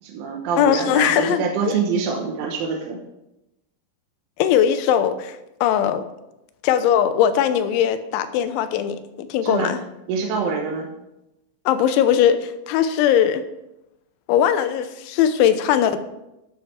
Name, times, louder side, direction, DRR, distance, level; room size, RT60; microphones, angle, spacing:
voice 1, 0.0-3.0 9.4-9.7 10.1-10.9, right 5 dB, 85° right, 0 dB, 3.7 m, -25 dB
voice 2, 0.6-1.7 4.4-6.0 6.6-9.8 11.7-13.4 14.3-16.0, left 9 dB, 85° left, 10 dB, 3.1 m, -20 dB
11.0 x 7.5 x 4.5 m, 0.90 s
omnidirectional pair, 5.4 m